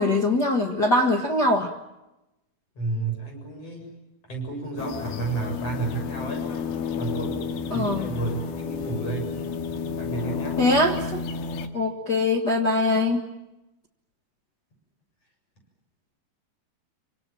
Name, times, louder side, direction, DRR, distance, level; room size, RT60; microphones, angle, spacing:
voice 1, 0.0-1.7 7.7-8.1 10.6-11.2 11.7-13.2, left 2 dB, 55° left, 3 dB, 1.1 m, -22 dB
voice 2, 2.8-3.9 4.3-6.5 7.0-7.4 7.7-9.4 10.0-10.6, right 3 dB, 35° left, 3 dB, 8.1 m, -31 dB
sound 1, 4.8-11.7, left 6 dB, 75° left, 3.5 m, -31 dB
28.0 x 25.5 x 7.6 m, 0.97 s
omnidirectional pair, 4.6 m